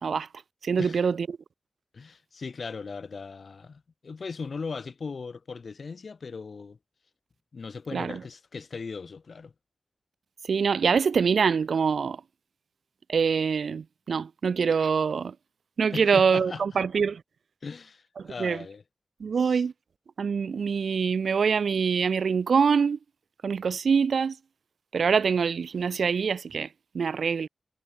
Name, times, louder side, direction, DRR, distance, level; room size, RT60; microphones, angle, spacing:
voice 1, 0.6-1.3 7.9-8.2 10.5-12.2 13.1-15.3 15.8-17.2 18.2-18.6 19.2-19.7 20.2-23.0 23.4-24.4 24.9-26.7 26.9-27.5, right 6 dB, 70° right, 1.8 m, -24 dB
voice 2, 1.9-6.8 7.5-9.5 15.9-16.6 17.6-18.8 19.4-19.6, left 4 dB, 50° left, 1.9 m, -38 dB
wide cardioid pair, 165°, 0 cm